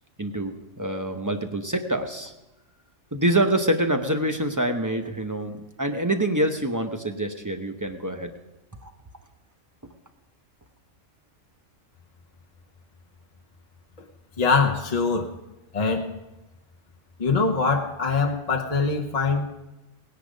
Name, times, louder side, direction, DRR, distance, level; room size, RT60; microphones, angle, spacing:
voice 1, 0.2-2.3 3.1-8.3 8.8-8.9, right 1 dB, 15° right, 5 dB, 0.8 m, -26 dB
voice 2, 14.4-15.3 15.7-16.1 17.2-19.5, left 4 dB, 40° left, 1 dB, 0.9 m, -23 dB
18.0 x 10.0 x 5.2 m, 1.0 s
omnidirectional pair, 1.3 m